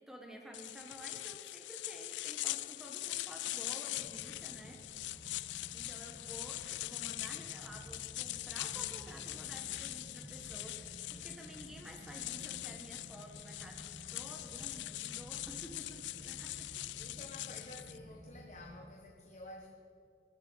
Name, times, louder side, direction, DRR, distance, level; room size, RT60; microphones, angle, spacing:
voice 1, 0.0-4.8 5.7-16.7, equal, 5° right, 1 dB, 1.2 m, -52 dB
sound 1, 0.5-18.0, left 17 dB, 80° left, 0.3 m, -42 dB
sound 2, 3.9-18.9, equal, 35° right, 1.2 m, -53 dB
voice 2, 17.0-19.8, left 2 dB, 40° left, 0 dB, 1.3 m, -51 dB
21.0 x 12.5 x 4.0 m, 2.8 s
head